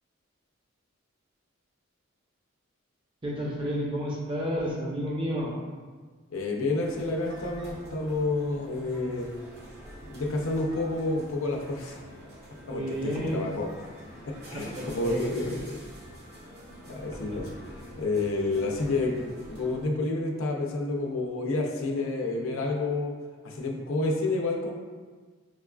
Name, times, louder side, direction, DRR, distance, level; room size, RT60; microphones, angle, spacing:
voice 1, 3.2-5.5 12.7-13.4 14.5-15.5, equal, 25° right, -4 dB, 0.7 m, -31 dB
voice 2, 6.3-9.3 10.0-12.0 12.7-13.7 14.5-15.8 16.9-17.5 18.0-23.1 23.4-24.7, left 2 dB, 85° left, 0 dB, 0.5 m, -29 dB
sound 1, 6.8-19.9, equal, 50° right, 0.9 m, -46 dB
6.0 x 2.3 x 2.3 m, 1.4 s
head